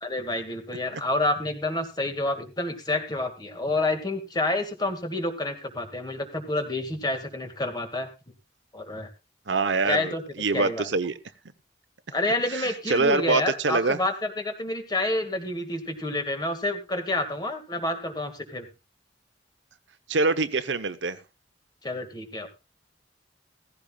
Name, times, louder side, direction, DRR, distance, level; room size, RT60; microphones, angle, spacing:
voice 1, 0.0-8.1 8.7-9.1 9.9-10.2 10.5-10.9 12.1-18.7 21.8-22.5, left 2 dB, 25° left, 2.0 m, -28 dB
voice 2, 9.5-11.1 12.5-14.0 20.1-21.2, right 3 dB, 80° right, 0.9 m, -25 dB
16.0 x 15.5 x 2.4 m
head